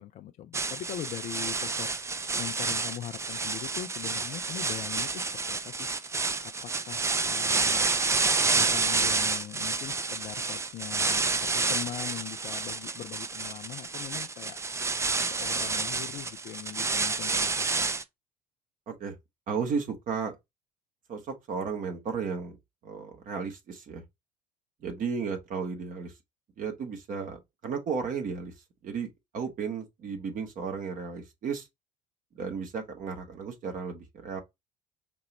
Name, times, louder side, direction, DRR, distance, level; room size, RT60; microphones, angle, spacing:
voice 1, 0.0-1.9 2.4-5.9 6.4-6.5 6.8-8.2 8.5-14.6 15.2-17.9, left 11 dB, 40° left, 0.5 m, -41 dB
sound 1, 0.5-18.0, right 3 dB, 15° right, 0.5 m, -29 dB
voice 2, 18.9-19.2 19.5-20.4 21.1-21.2 21.5-22.6 22.8-24.0 24.8-26.1 26.6-28.5 28.8-31.7 32.3-34.4, right 5 dB, 45° right, 1.4 m, -34 dB
5.2 x 2.9 x 3.0 m
figure-of-eight pair, 60°, 19 cm